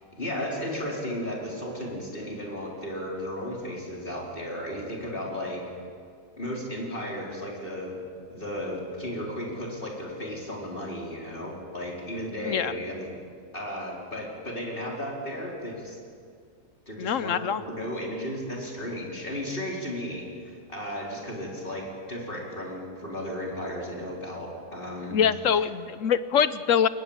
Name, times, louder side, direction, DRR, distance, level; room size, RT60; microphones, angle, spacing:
voice 1, 0.0-5.7 6.4-8.0 8.3-13.1 13.5-16.0 16.9-25.2, equal, 30° left, -2 dB, 4.8 m, -34 dB
voice 2, 17.0-17.6 25.1-26.9, left 8 dB, 60° left, 14 dB, 1.0 m, -24 dB
22.0 x 20.0 x 9.0 m, 2.2 s
omnidirectional pair, 1.7 m